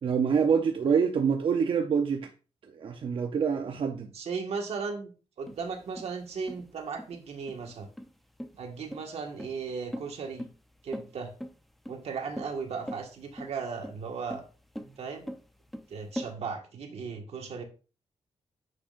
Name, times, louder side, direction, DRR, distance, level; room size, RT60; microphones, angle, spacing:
voice 1, 0.0-2.3 2.7-4.1, right 6 dB, 55° right, 0.7 m, -26 dB
voice 2, 4.1-7.9 8.6-10.4 10.8-11.3 11.9-14.4 15.0-15.3 15.9-17.6, right 5 dB, 80° right, 1.7 m, -36 dB
sound 1, 5.5-16.3, equal, ahead, 0.6 m, -41 dB
9.8 x 6.3 x 2.5 m
wide cardioid pair, 155°, 11 cm